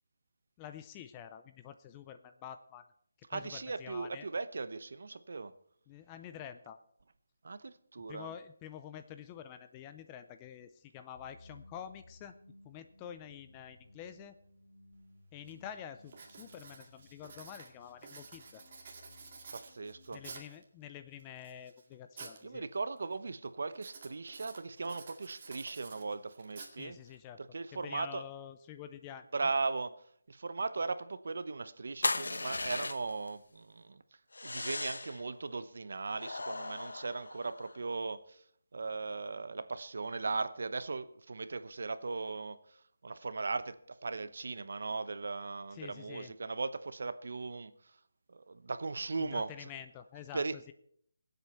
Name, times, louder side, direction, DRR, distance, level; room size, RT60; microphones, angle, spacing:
voice 1, 0.6-2.8 3.3-4.3 5.9-6.8 8.1-12.3 12.6-14.3 15.3-18.6 20.1-22.7 26.8-27.4 27.7-29.5 45.7-46.3 49.2-50.7, left 9 dB, 15° left, 0.5 m, -48 dB
voice 2, 3.3-5.5 7.4-8.3 19.5-20.2 22.4-27.0 27.4-28.2 29.3-29.9 30.3-34.0 34.4-38.4 38.7-42.8 43.0-47.7 48.3-49.7 50.3-50.7, right 3 dB, 55° right, 0.9 m, -38 dB
sound 1, 11.1-20.5, left 2 dB, 40° left, 3.0 m, -60 dB
Writing, 14.9-15.0 15.5-15.7 16.1-20.6 21.2-22.4 22.7-23.2 23.7-27.2, right 4 dB, 30° right, 2.1 m, -51 dB
sound 2, 32.0-33.3 34.3-35.2 36.1-37.8, left 3 dB, 90° left, 1.0 m, -37 dB
23.5 x 8.1 x 4.4 m
hypercardioid pair, 175°, 0 cm